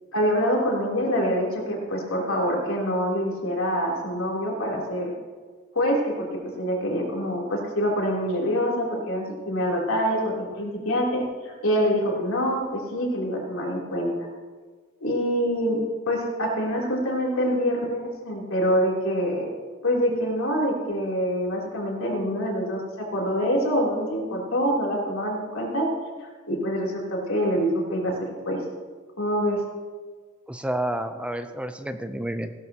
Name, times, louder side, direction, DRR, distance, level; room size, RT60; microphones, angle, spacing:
voice 1, 0.1-5.1 5.7-14.1 15.0-15.8 16.1-19.5 19.8-25.9 26.2-28.1 28.4-28.6 29.2-29.6, equal, 85° left, -2 dB, 3.2 m, -25 dB
voice 2, 30.5-32.5, right 1 dB, 5° right, 9 dB, 0.5 m, -30 dB
16.5 x 12.5 x 2.9 m, 1.5 s
head